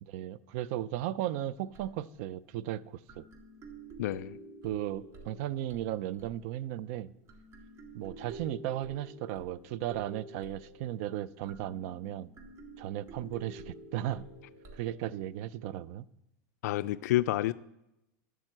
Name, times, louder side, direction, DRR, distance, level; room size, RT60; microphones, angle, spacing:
voice 1, 0.0-3.3 4.6-7.1 7.9-12.3 12.8-14.3 14.7-16.1, right 12 dB, 60° right, 0.5 m, -36 dB
sound 1, 1.4-2.3 3.1-7.0 7.3-15.5, right 2 dB, 30° right, 2.0 m, -50 dB
voice 2, 4.0-4.4 16.6-17.5, left 15 dB, 80° left, 0.4 m, -29 dB
12.0 x 7.5 x 7.8 m
supercardioid pair, 145°, 9 cm